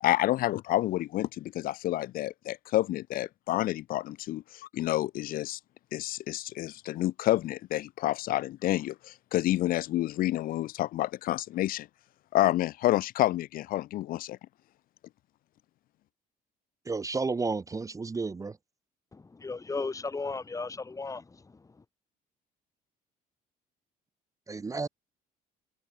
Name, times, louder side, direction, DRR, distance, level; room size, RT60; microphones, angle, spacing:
voice 1, 0.0-5.6 5.9-11.9 12.3-14.4, left 15 dB, 60° left, 0.4 m, -29 dB
voice 2, 16.9-18.5 24.5-24.9, right 4 dB, 20° right, 0.7 m, -31 dB
voice 3, 19.1-21.7, left 4 dB, 20° left, 1.6 m, -36 dB
cardioid pair, 110°, 17 cm